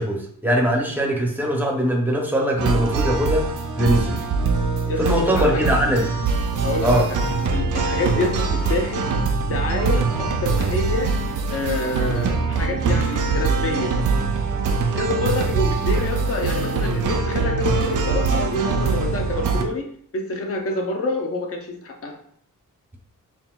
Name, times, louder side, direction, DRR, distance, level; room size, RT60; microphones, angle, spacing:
voice 1, 0.0-3.5 3.8-4.2 5.0-6.1 6.8-7.1 8.1-8.2, equal, 5° right, -1 dB, 0.6 m, -21 dB
sound 1, 2.6-19.6, right 4 dB, 70° right, 0.5 m, -23 dB
voice 2, 4.9-6.0 6.6-7.2 7.5-9.1 9.5-11.1 11.5-13.9 15.0-19.8 20.1-22.1, left 2 dB, 45° left, 3 dB, 0.7 m, -27 dB
5.7 x 2.5 x 2.3 m, 0.64 s
wide cardioid pair, 165°, 33 cm